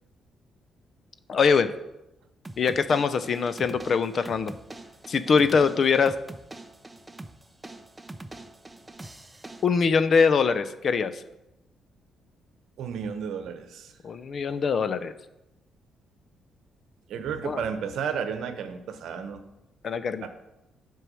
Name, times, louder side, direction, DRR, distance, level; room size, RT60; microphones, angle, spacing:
voice 1, 1.3-1.7 2.6-4.5 5.1-6.1 9.6-11.2 14.0-15.1 17.4-17.6 19.8-20.3, left 5 dB, 50° left, 13 dB, 0.6 m, -23 dB
sound 1, 2.4-9.7, right 2 dB, 15° right, 0.6 m, -44 dB
voice 2, 12.8-13.9 17.1-19.4 20.2-20.3, right 7 dB, 75° right, 8 dB, 0.9 m, -32 dB
8.0 x 4.7 x 6.2 m, 0.92 s
cardioid pair, 90°, 0 cm